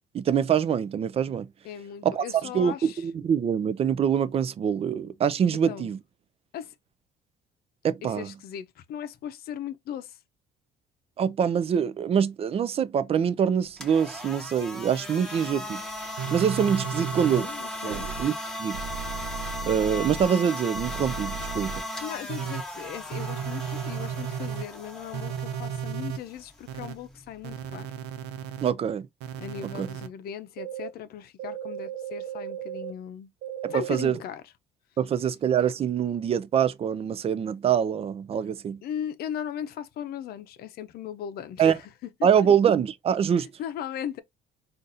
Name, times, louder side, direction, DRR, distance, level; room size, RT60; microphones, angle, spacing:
voice 1, 0.1-1.5 2.0-2.2 2.5-6.0 7.8-8.3 11.2-15.8 16.3-17.5 17.8-18.3 18.6-18.8 19.7-21.8 28.6-29.1 29.8-29.9 33.6-34.2 35.0-38.8 41.6-41.8 42.2-43.5, right 8 dB, 35° right, 0.4 m, -24 dB
voice 2, 1.6-3.0 5.7-5.9 6.5-6.7 8.0-10.2 17.0-18.1 22.0-27.9 29.4-33.3 33.7-34.4 38.8-42.3 43.4-44.2, left 9 dB, 65° left, 0.6 m, -38 dB
Nerf Stryfe revving, 13.7-27.7, left 1 dB, 5° left, 1.1 m, -37 dB
sound 1, 16.2-17.4 17.9-18.2 18.7-20.2 20.7-21.8 22.3-22.6 23.1-24.6 25.1-26.2 26.7-26.9 27.4-28.7 29.2-30.1 30.6-30.9 31.4-32.9 33.4-34.1, right 8 dB, 90° right, 0.6 m, -35 dB
3.9 x 2.5 x 2.6 m
cardioid pair, 110°, 17 cm